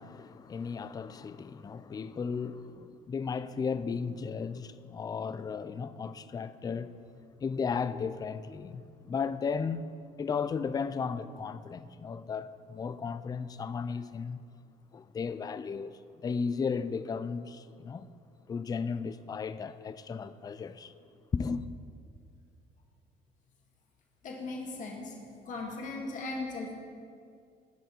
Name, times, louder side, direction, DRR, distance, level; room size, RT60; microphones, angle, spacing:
voice 1, 0.0-6.9 7.4-9.8 10.2-14.4 14.9-18.1 18.5-20.9 21.3-21.7, left 5 dB, 25° left, 0.4 m, -35 dB
voice 2, 24.2-25.2 25.4-26.7, left 2 dB, 50° left, 2.0 m, -37 dB
17.0 x 5.8 x 4.5 m
cardioid pair, 110°, 17 cm